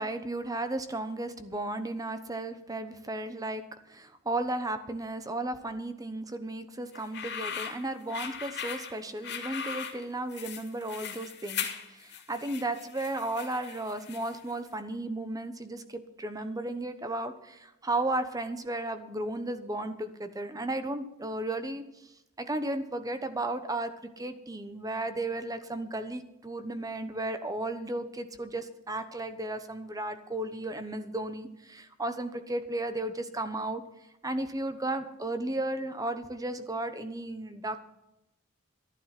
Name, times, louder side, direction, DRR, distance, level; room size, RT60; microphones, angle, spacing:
voice 1, 0.0-21.8 22.4-33.8 34.2-37.8, right 2 dB, 15° right, 10 dB, 1.0 m, -34 dB
sound 1, 6.9-14.5, left 7 dB, 55° left, 2.3 m, -39 dB
12.5 x 11.0 x 5.9 m, 0.90 s
head